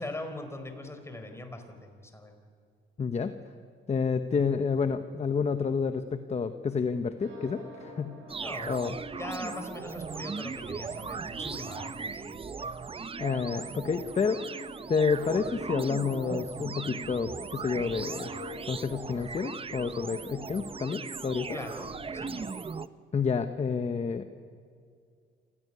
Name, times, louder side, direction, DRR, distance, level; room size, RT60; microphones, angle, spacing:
voice 1, 0.0-2.3 4.4-4.6 8.4-8.8 9.1-12.2 21.5-22.5, left 2 dB, 15° left, 6 dB, 4.2 m, -41 dB
voice 2, 3.0-3.3 3.9-8.2 8.7-9.0 13.2-18.3 18.7-21.5 23.1-24.3, left 5 dB, 35° left, 9 dB, 1.0 m, -29 dB
sound 1, 7.2-18.6, equal, 85° right, 7.7 m, -49 dB
sound 2, 8.3-22.9, right 5 dB, 30° right, 0.7 m, -38 dB
27.5 x 16.0 x 9.7 m, 2.2 s
cardioid pair, 90°, 20 cm